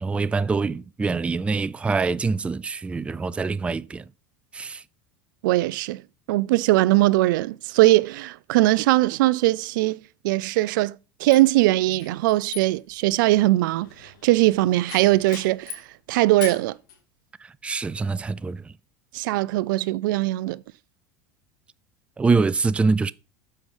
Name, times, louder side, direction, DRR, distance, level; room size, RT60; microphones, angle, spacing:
voice 1, 0.0-4.0 4.5-4.8 17.6-18.7 22.2-23.1, right 4 dB, 10° right, 0.3 m, -24 dB
voice 2, 5.4-6.0 6.3-15.8 16.1-16.8 19.1-20.6, right 18 dB, 75° right, 0.4 m, -21 dB
sound 1, 11.3-15.9 16.4-17.0, left 8 dB, 80° left, 2.5 m, -40 dB
7.9 x 5.5 x 5.4 m
supercardioid pair, 110°, 11 cm